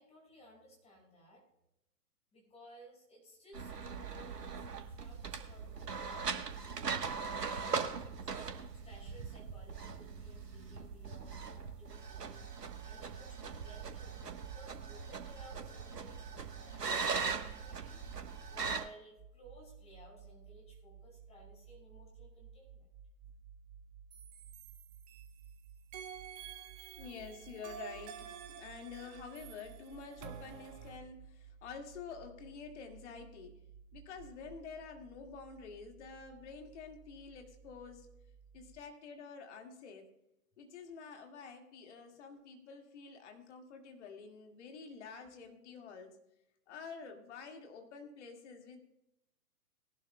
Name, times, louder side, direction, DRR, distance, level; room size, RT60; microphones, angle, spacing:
voice 1, 0.0-1.5 2.3-8.4 8.9-12.4 12.8-18.0 18.5-22.9, right 1 dB, 15° left, -1 dB, 5.2 m, -58 dB
sound 1, 3.5-18.9, right 5 dB, 80° right, 1.3 m, -40 dB
sound 2, 19.2-38.8, right 7 dB, 5° right, 1.2 m, -57 dB
sound 3, 24.1-25.5 25.9-31.0, right 9 dB, 25° right, 0.9 m, -50 dB
voice 2, 27.0-33.6 33.9-38.1 38.5-40.1 40.6-46.2 46.7-48.8, left 5 dB, 45° left, 4 dB, 2.0 m, -49 dB
20.5 x 11.5 x 2.2 m, 0.87 s
figure-of-eight pair, 120°, 47 cm